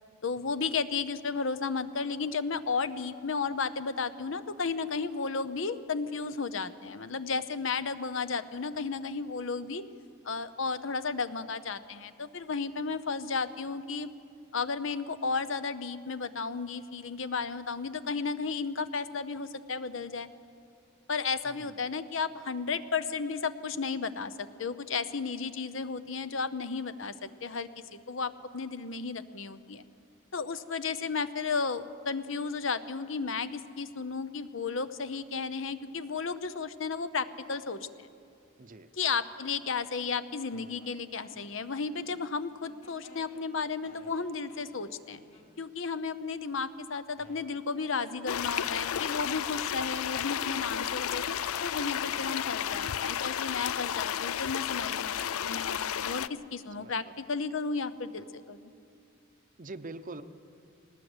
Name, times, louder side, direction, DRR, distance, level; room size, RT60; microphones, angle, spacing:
voice 1, 0.2-9.8 10.2-14.1 14.5-20.3 21.1-27.1 27.4-27.7 28.1-29.8 30.3-38.1 38.9-45.2 45.6-51.2 51.6-58.7, left 4 dB, 60° left, 13 dB, 0.8 m, -33 dB
voice 2, 21.5-21.8 38.6-38.9 56.8-56.9 59.6-60.2, right 2 dB, 40° right, 11 dB, 0.7 m, -43 dB
sound 1, 40.5-42.4 42.6-45.9 46.6-46.7 47.2-52.6, left 2 dB, 35° left, 3.4 m, -58 dB
sound 2, 48.3-56.3, left 9 dB, 80° left, 0.4 m, -32 dB
20.0 x 18.5 x 8.0 m, 2.4 s
head